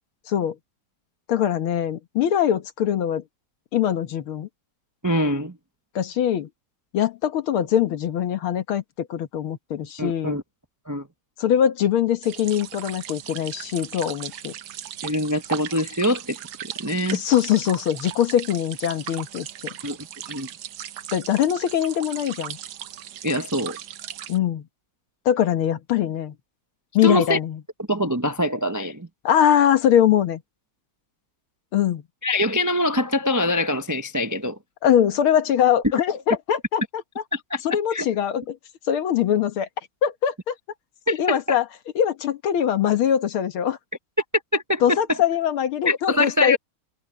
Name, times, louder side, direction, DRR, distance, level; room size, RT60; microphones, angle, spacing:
voice 1, 1.3-3.2 3.7-4.5 6.0-6.5 6.9-10.4 11.4-14.5 17.1-19.7 21.1-22.6 24.3-24.7 25.3-26.3 26.9-27.6 29.2-30.4 31.7-32.0 34.8-37.0 37.6-38.6 38.9-39.7 40.0-40.5 41.2-41.7 42.0-43.8 44.8-46.6, left 10 dB, 80° left, 2.1 m, -22 dB
voice 2, 5.0-5.5 10.0-10.4 10.9-11.0 15.0-16.4 16.8-17.2 19.8-20.0 20.3-20.5 23.2-23.8 27.0-27.4 27.9-29.1 32.2-34.6 37.3-37.6 37.9-38.1 41.1-41.6 44.5-45.2 45.9-46.6, left 1 dB, 30° right, 0.3 m, -24 dB
sound 1, 12.2-24.4, right 11 dB, 60° right, 1.2 m, -37 dB
omnidirectional pair, 2.3 m